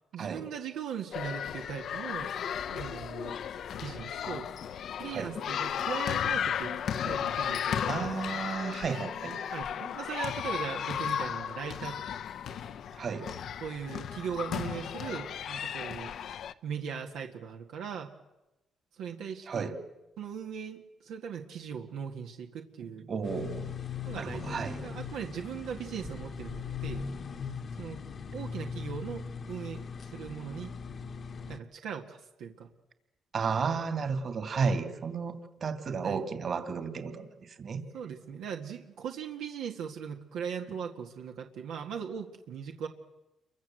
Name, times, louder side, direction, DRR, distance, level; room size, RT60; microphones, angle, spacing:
voice 1, 0.1-2.3 2.7-3.4 3.8-4.5 5.0-6.8 7.0-7.8 9.5-12.2 13.6-16.1 16.6-18.1 18.9-19.7 20.2-23.1 24.1-24.6 24.8-27.1 27.8-28.0 28.3-30.7 31.5-32.7 36.0-36.2 37.9-42.9, right 7 dB, 85° right, 2 dB, 1.9 m, -39 dB
sound 1, 1.1-16.5, left 8 dB, 65° left, 0.9 m, -35 dB
voice 2, 7.9-9.4 13.0-13.3 19.5-19.8 23.1-23.7 24.1-24.8 33.3-37.8, right 5 dB, 50° right, 8 dB, 2.7 m, -33 dB
sound 2, 23.2-31.6, left 6 dB, 50° left, 1.3 m, -40 dB
29.0 x 23.5 x 7.8 m, 1.0 s
cardioid pair, 90°, 0 cm